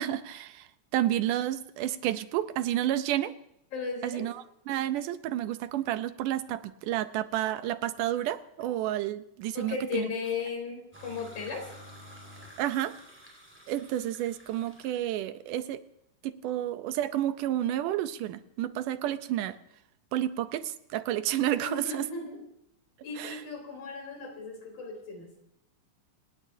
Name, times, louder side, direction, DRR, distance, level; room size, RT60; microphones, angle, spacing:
voice 1, 0.0-3.3 4.0-10.1 12.6-13.0 13.7-15.8 16.2-19.6 20.1-22.1 23.2-23.4, right 12 dB, 80° right, 12 dB, 2.3 m, -30 dB
voice 2, 3.7-4.3 9.5-11.7 21.6-22.4 23.0-25.3, left 5 dB, 60° left, 1 dB, 5.1 m, -36 dB
sound 1, 10.9-15.1, equal, 5° right, 5.8 m, -51 dB
27.0 x 18.0 x 2.7 m, 0.77 s
omnidirectional pair, 3.8 m